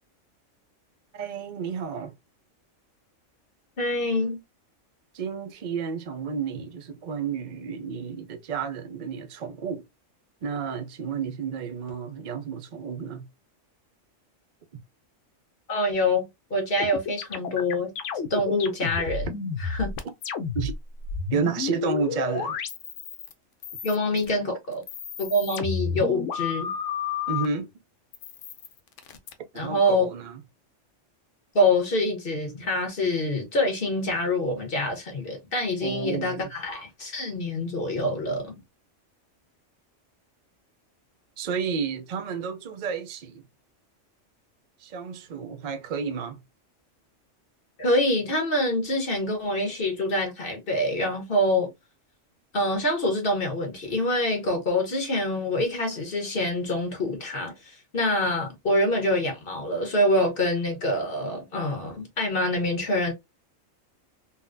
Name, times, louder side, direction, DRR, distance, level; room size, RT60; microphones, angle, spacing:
voice 1, 1.1-2.2 5.1-9.9 10.4-13.3 20.5-20.7 21.3-22.6 27.3-27.7 29.5-30.4 35.8-36.5 41.4-43.4 44.8-46.4, right 6 dB, 55° right, 0.5 m, -31 dB
voice 2, 3.8-4.4 15.7-17.9 18.3-19.3 19.6-19.9 23.8-24.8 25.2-26.7 29.5-30.1 31.5-38.6 47.8-51.7 52.5-63.1, left 1 dB, 45° left, 1.3 m, -25 dB
sound 1, 16.8-20.7 21.0-23.3 23.6-24.3 24.7-27.5 28.1-29.3, left 6 dB, 75° left, 0.9 m, -31 dB
3.8 x 2.2 x 2.5 m
omnidirectional pair, 1.3 m